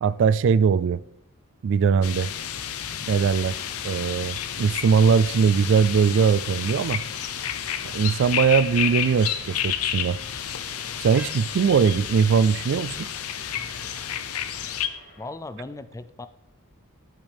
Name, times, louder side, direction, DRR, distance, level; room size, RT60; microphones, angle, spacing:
voice 1, 0.0-1.0 1.6-2.3 3.1-3.6 3.8-7.0 7.9-10.2 11.0-13.1, right 6 dB, 60° right, 0.3 m, -21 dB
sound 1, 2.0-14.9, left 9 dB, 80° left, 0.7 m, -31 dB
sound 2, 3.0-15.3, left 2 dB, 60° left, 3.2 m, -48 dB
sound 3, 8.3-13.6, right 1 dB, 5° right, 1.1 m, -50 dB
voice 2, 15.2-16.3, left 2 dB, 15° left, 0.4 m, -37 dB
12.5 x 6.2 x 3.5 m
head